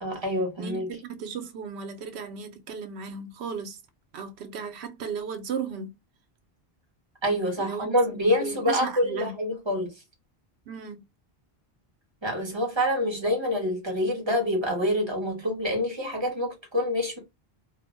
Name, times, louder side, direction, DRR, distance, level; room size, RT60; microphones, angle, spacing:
voice 1, 0.0-0.9 7.2-9.9 12.2-17.2, equal, 25° right, 1.1 m, -26 dB
voice 2, 0.6-3.8 4.1-5.9 7.3-7.9 8.4-9.3 10.7-11.0, right 6 dB, 90° right, 0.8 m, -35 dB
2.4 x 2.1 x 3.1 m
omnidirectional pair, 1.1 m